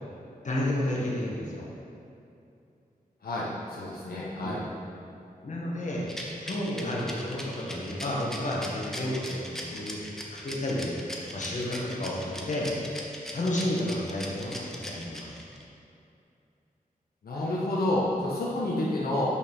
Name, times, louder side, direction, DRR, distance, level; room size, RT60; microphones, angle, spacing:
voice 1, 0.4-1.6 4.4-4.6 5.4-6.1 6.4-10.0 10.4-10.9 11.3-12.7 13.3-15.3, left 1 dB, 55° left, -4 dB, 1.6 m, -31 dB
voice 2, 3.2-4.6 17.2-19.3, left 1 dB, 80° left, -7 dB, 1.1 m, -29 dB
Rattle, 6.1-15.6, equal, 5° left, 0.9 m, -39 dB
6.5 x 5.7 x 5.5 m, 2.6 s
wide cardioid pair, 110°, 15 cm